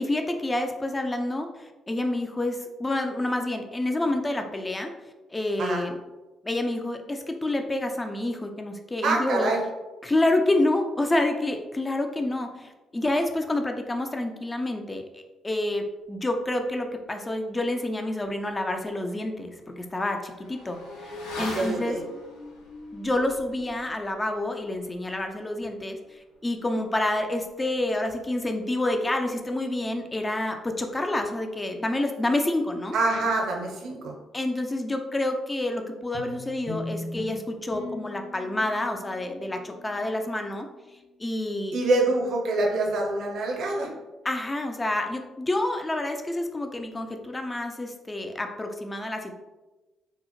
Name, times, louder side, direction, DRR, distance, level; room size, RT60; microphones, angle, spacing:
voice 1, 0.0-4.9 5.3-5.9 6.4-9.5 10.0-22.0 22.9-32.9 34.3-40.7 41.2-41.8 44.2-49.3, left 1 dB, 25° left, 5 dB, 0.4 m, -28 dB
voice 2, 9.0-9.6 21.4-22.0 32.9-34.2 41.7-43.9, right 2 dB, 65° right, 0 dB, 0.7 m, -25 dB
Motorcycle / Accelerating revving vroom, 18.2-18.3 18.7-28.7 29.0-29.1, left 1 dB, 85° left, 0.5 m, -43 dB
sound 1, 36.1-40.8, left 2 dB, 45° left, 1.4 m, -40 dB
3.6 x 2.0 x 2.9 m, 1.1 s
hypercardioid pair, 45°, 0 cm